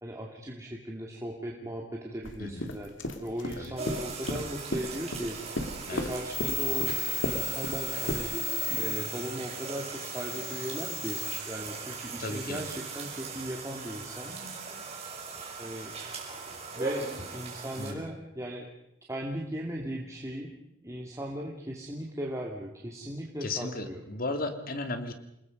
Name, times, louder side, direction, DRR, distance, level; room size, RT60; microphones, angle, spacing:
voice 1, 0.0-5.6 5.9-8.3 8.8-14.4 15.6-16.0 16.7-18.7 19.1-20.5 20.8-24.0, equal, 15° right, -1 dB, 2.4 m, -38 dB
sound 1, 2.2-2.4 2.6-5.3 5.6-8.2, left 1 dB, 90° left, 2.6 m, -34 dB
voice 2, 2.4-2.7 3.6-3.7 5.9-6.1 12.2-12.6 17.8-18.0 23.4-25.1, left 2 dB, 50° left, 7 dB, 2.5 m, -35 dB
sound 2, 3.8-17.9, right 4 dB, 35° right, 5.5 m, -39 dB
sound 3, 6.3-11.4, left 3 dB, 10° left, 2.5 m, -35 dB
28.5 x 21.0 x 5.3 m, 0.79 s
head